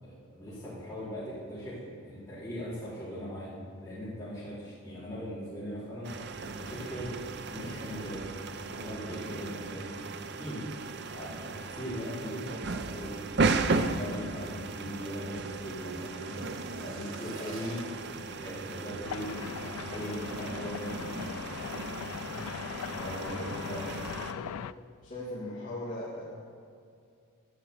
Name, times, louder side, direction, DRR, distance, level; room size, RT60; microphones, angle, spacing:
voice 1, 0.0-3.5 3.8-6.1 6.6-7.2 7.5-8.3 8.6-10.7 11.0-13.2 13.6-16.4 16.8-17.8 18.1-21.3 22.9-23.9, equal, 15° left, -12 dB, 4.3 m, -40 dB
sound 1, 6.0-24.3, right 3 dB, 50° right, 0.7 m, -36 dB
sound 2, 14.2-22.0 22.3-22.6 22.9-23.4 23.8-23.9, right 3 dB, 75° right, 2.1 m, -53 dB
sound 3, 19.0-24.7, left 8 dB, 85° left, 0.3 m, -39 dB
voice 2, 23.0-23.6 24.1-24.6 25.0-26.2, left 1 dB, 35° left, -7 dB, 2.5 m, -40 dB
11.5 x 10.5 x 8.3 m, 2.3 s
head